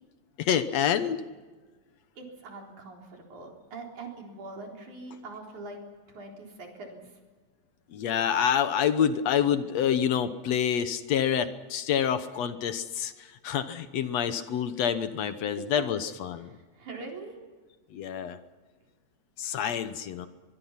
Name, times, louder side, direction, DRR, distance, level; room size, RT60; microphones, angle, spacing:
voice 1, 0.4-1.2 7.9-13.1 13.4-16.5 17.9-18.4 19.4-20.3, left 8 dB, 70° left, 11 dB, 2.1 m, -27 dB
voice 2, 2.2-5.8 6.1-7.0 15.8-15.9 16.4-17.4, right 3 dB, 85° right, 1 dB, 5.5 m, -43 dB
23.0 x 23.0 x 5.8 m, 1.3 s
omnidirectional pair, 3.3 m